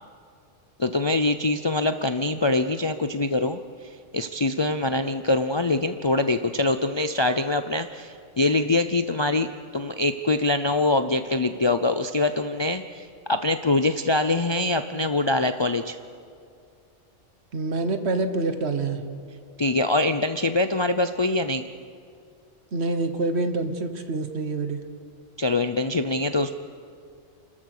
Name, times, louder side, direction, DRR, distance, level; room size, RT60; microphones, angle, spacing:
voice 1, 0.8-3.6 4.1-9.5 9.7-16.0 19.6-21.6 25.4-26.5, left 2 dB, 40° left, 8 dB, 0.4 m, -24 dB
voice 2, 17.5-19.0 22.7-24.8, right 3 dB, 65° right, 8 dB, 1.5 m, -26 dB
29.5 x 14.0 x 6.6 m, 2.3 s
omnidirectional pair, 1.2 m